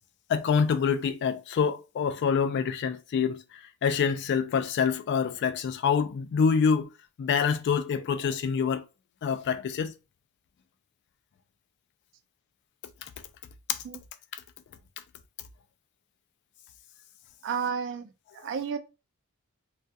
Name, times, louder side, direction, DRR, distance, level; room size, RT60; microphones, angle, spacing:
voice 1, 0.3-3.4 3.8-6.9 7.2-8.8 9.2-9.9 13.7-13.8, left 6 dB, 50° left, 0.3 m, -26 dB
voice 2, 17.4-18.8, right 6 dB, 55° right, 0.3 m, -32 dB
2.3 x 2.2 x 2.6 m
head